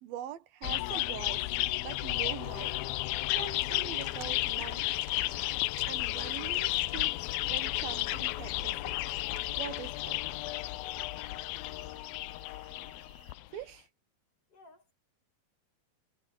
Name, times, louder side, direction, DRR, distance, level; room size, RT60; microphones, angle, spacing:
voice 1, 0.0-1.5 1.8-2.8 3.3-5.0 5.9-7.1 7.5-9.0 9.6-10.2 13.5-13.9, right 11 dB, 80° right, 3.2 m, -43 dB
sound 1, 0.6-13.5, left 18 dB, 90° left, 2.5 m, -33 dB
sound 2, 2.4-13.3, left 2 dB, 20° left, 4.1 m, -57 dB
sound 3, 3.4-10.2, right 4 dB, 55° right, 6.2 m, -58 dB
voice 2, 10.9-12.0 14.5-14.9, left 3 dB, 45° left, 3.2 m, -59 dB
omnidirectional pair, 4.2 m